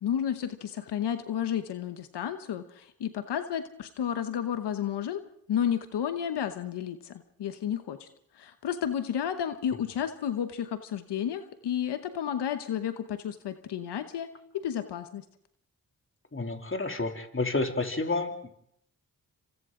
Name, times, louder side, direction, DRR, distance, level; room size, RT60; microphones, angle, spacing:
voice 1, 0.0-5.2 5.5-8.1 8.3-15.2, left 9 dB, 85° left, 9 dB, 1.0 m, -32 dB
voice 2, 16.3-18.5, left 3 dB, 30° left, 4 dB, 3.0 m, -30 dB
27.5 x 26.0 x 3.8 m, 0.71 s
cardioid pair, 45°, 40 cm